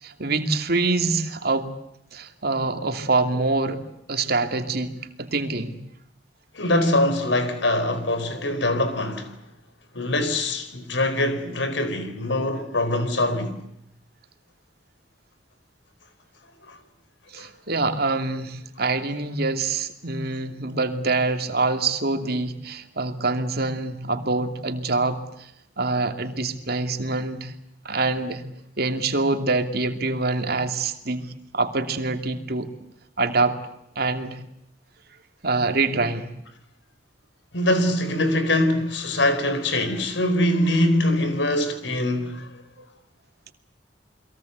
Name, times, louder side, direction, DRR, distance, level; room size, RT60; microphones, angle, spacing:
voice 1, 0.0-1.7 2.1-3.8 4.1-4.9 5.2-5.8 17.3-25.5 25.8-27.5 27.8-28.4 28.8-32.7 33.2-33.6 34.0-34.4 35.4-36.3 42.8-42.9, right 3 dB, 55° right, 2.7 m, -25 dB
voice 2, 6.5-9.3 9.9-13.6 16.7-16.8 17.4-17.5 37.5-42.5, left 1 dB, 80° left, 4.3 m, -23 dB
29.5 x 22.0 x 8.2 m
head